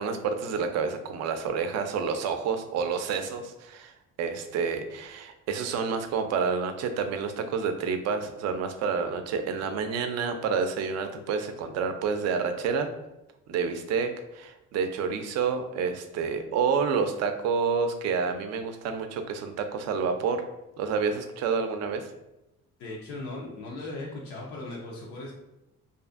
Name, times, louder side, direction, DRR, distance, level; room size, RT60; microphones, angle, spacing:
voice 1, 0.0-3.9 4.2-12.9 13.5-20.4 20.8-22.1, right 5 dB, 60° right, 7 dB, 0.4 m, -29 dB
voice 2, 22.8-25.3, left 2 dB, 90° left, -3 dB, 0.6 m, -38 dB
2.5 x 2.5 x 2.4 m, 0.92 s
cardioid pair, 110°, 29 cm